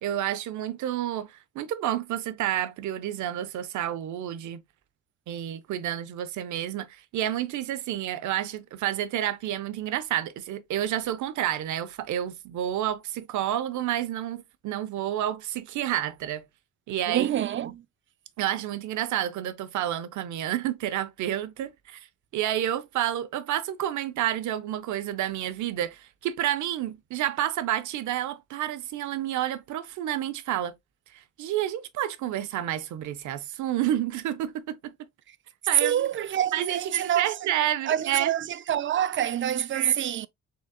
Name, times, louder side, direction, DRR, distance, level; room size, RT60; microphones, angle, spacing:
voice 1, 0.0-4.6 5.3-16.4 16.9-17.7 18.4-22.1 22.3-30.7 31.1-34.9 35.7-36.1 36.5-38.3 39.7-39.9, right 12 dB, 75° right, 0.7 m, -30 dB
voice 2, 17.1-17.8 35.8-37.5 37.8-40.3, right 10 dB, 40° right, 0.4 m, -27 dB
4.0 x 3.8 x 2.2 m
cardioid pair, 90°, 30 cm